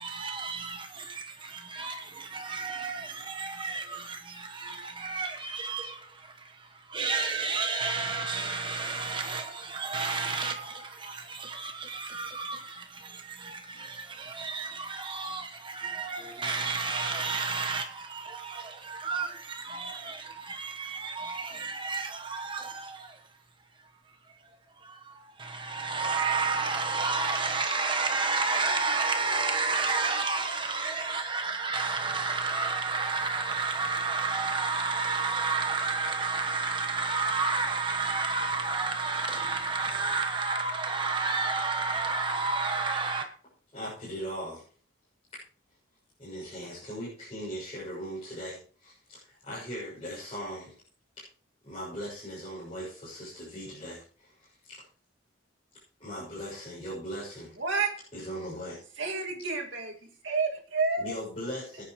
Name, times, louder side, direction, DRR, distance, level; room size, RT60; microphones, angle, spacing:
voice 1, 0.1-0.8 1.8-1.9 2.4-3.0 3.3-3.8 5.0-5.8 6.9-9.4 9.7-10.5 11.6-12.6 14.4-14.7 15.0-15.4 15.8-17.8 19.0-19.3 19.8-19.9 20.6-22.6 25.7-43.2, right 4 dB, 25° right, 1.2 m, -30 dB
voice 2, 43.7-44.6 46.2-50.7 51.6-54.5 56.0-57.6 58.1-58.8 61.0-61.8, equal, 30° left, 6.7 m, -39 dB
voice 3, 57.6-58.0 59.0-60.0 60.2-61.1, right 4 dB, 65° right, 2.3 m, -29 dB
20.0 x 10.0 x 3.1 m
head